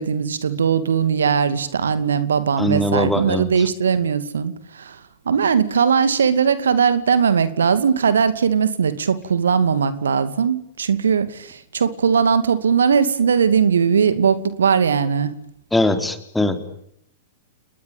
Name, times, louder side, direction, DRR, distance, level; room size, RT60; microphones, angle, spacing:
voice 1, 0.0-5.0 5.3-15.3, right 6 dB, 70° right, 13 dB, 2.4 m, -19 dB
voice 2, 2.6-3.7 15.7-16.6, left 1 dB, 5° left, 8 dB, 3.8 m, -21 dB
30.0 x 20.5 x 9.1 m, 0.71 s
figure-of-eight pair, 100°, 0 cm